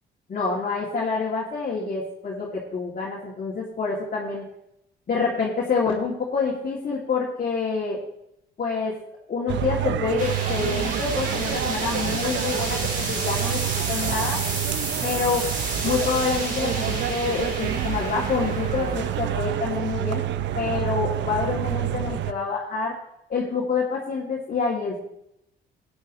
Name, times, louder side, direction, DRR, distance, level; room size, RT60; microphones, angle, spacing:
voice 1, 0.3-4.4 5.1-8.0 8.6-9.0 9.3-14.4 15.0-15.4 15.8-20.3 20.5-23.0 23.3-25.0, left 5 dB, 45° left, -5 dB, 2.6 m, -27 dB
sound 1, 9.5-22.3, right 12 dB, 70° right, 0.5 m, -28 dB
sound 2, 10.2-21.3, right 2 dB, 40° right, 3.6 m, -32 dB
15.5 x 9.6 x 3.1 m, 0.79 s
cardioid pair, 90°, 20 cm